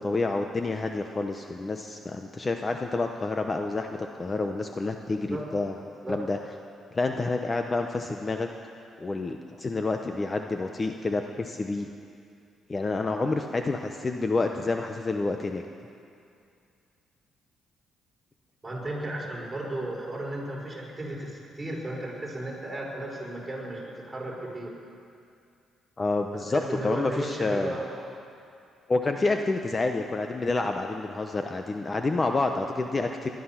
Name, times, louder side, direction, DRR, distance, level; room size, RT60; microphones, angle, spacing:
voice 1, 0.0-5.8 6.1-6.4 6.9-8.5 9.0-11.9 12.7-15.6 26.0-27.7 28.9-33.3, left 3 dB, 30° left, 5 dB, 0.8 m, -28 dB
voice 2, 18.6-24.7 26.3-27.8, right 1 dB, 15° right, -4 dB, 4.9 m, -35 dB
19.5 x 12.0 x 5.9 m, 2.4 s
cardioid pair, 90°, 0 cm